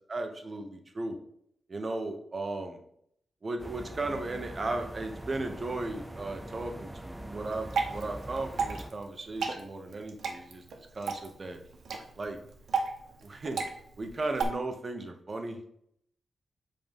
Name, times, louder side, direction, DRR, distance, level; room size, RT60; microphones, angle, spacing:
voice 1, 0.1-1.2 1.7-2.8 3.4-11.6 12.2-12.4 13.2-13.6 14.0-15.6, right 2 dB, 30° right, 5 dB, 1.0 m, -36 dB
sound 1, 3.6-8.9, right 1 dB, 10° right, 0.4 m, -43 dB
Water / Drip, 7.4-14.4, right 5 dB, 85° right, 1.2 m, -35 dB
7.5 x 3.8 x 5.3 m, 0.70 s
wide cardioid pair, 160°, 0 cm